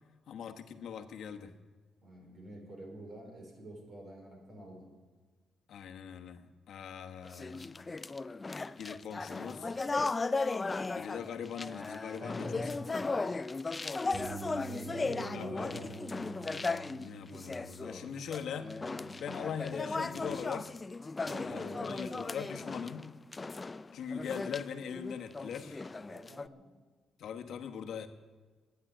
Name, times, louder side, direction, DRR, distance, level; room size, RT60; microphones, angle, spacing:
voice 1, 0.3-1.5 5.7-6.4 6.7-7.8 8.8-9.7 10.9-12.5 12.9-13.0 15.3-15.9 17.0-18.8 19.2-20.7 21.2-23.1 23.9-25.8 27.2-28.1, left 7 dB, 75° left, 5 dB, 1.2 m, -41 dB
voice 2, 2.0-4.9 12.2-12.9 14.7-16.0 21.2-22.4 26.1-26.7, equal, 50° right, 2 dB, 4.6 m, -46 dB
sound 1, 7.2-26.5, left 3 dB, 25° left, 0.4 m, -37 dB
Bass guitar, 14.1-20.4, right 7 dB, 85° right, 3.1 m, -49 dB
12.5 x 9.3 x 10.0 m, 1.4 s
cardioid pair, 95°, 0 cm